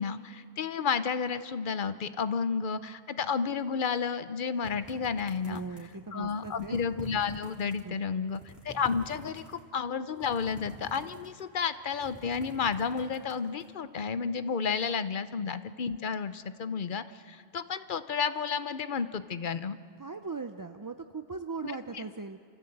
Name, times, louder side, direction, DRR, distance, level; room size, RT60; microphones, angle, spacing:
voice 1, 0.0-5.6 6.1-19.8 21.6-22.0, left 6 dB, 55° left, 12 dB, 0.9 m, -32 dB
sound 1, 4.6-6.0 6.3-7.8 8.2-9.6 10.1-11.5 11.8-13.6, right 1 dB, ahead, 3.0 m, -48 dB
voice 2, 5.4-6.8 7.8-8.4 20.0-22.4, right 4 dB, 30° right, 7 dB, 0.4 m, -39 dB
28.0 x 15.0 x 7.9 m, 2.2 s
omnidirectional pair, 1.1 m